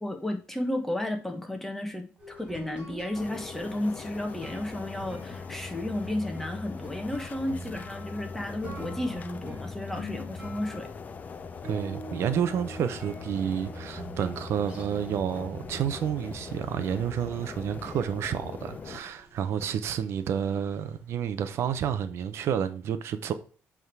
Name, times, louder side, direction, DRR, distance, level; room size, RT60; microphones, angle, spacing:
voice 1, 0.0-10.9, left 1 dB, 5° left, 1.4 m, -33 dB
sound 1, 2.2-22.0, right 1 dB, 15° right, 3.8 m, -46 dB
sound 2, 3.1-19.0, left 5 dB, 35° left, 0.6 m, -41 dB
voice 2, 11.6-23.3, right 8 dB, 65° right, 0.7 m, -30 dB
8.1 x 3.7 x 4.7 m
cardioid pair, 110°, 5 cm